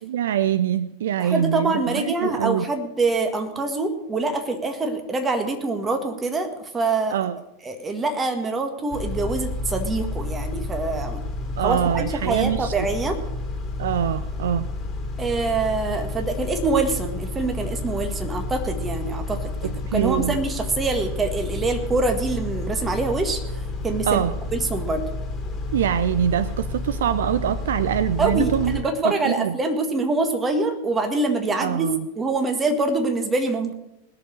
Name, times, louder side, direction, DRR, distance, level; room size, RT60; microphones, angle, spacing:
voice 1, 0.0-2.7 7.1-7.4 11.6-12.9 13.8-14.7 19.6-20.4 24.1-24.3 25.7-29.6 31.6-32.1, right 9 dB, 60° right, 15 dB, 0.4 m, -24 dB
voice 2, 1.2-7.2 7.6-11.2 11.6-13.2 15.2-24.2 24.5-25.0 28.2-33.7, right 3 dB, 15° right, 6 dB, 1.7 m, -25 dB
Car / Idling / Accelerating revving vroom, 8.9-28.8, left 2 dB, 25° left, 2.2 m, -30 dB
20.0 x 6.8 x 6.5 m, 0.88 s
figure-of-eight pair, 90°, 0 cm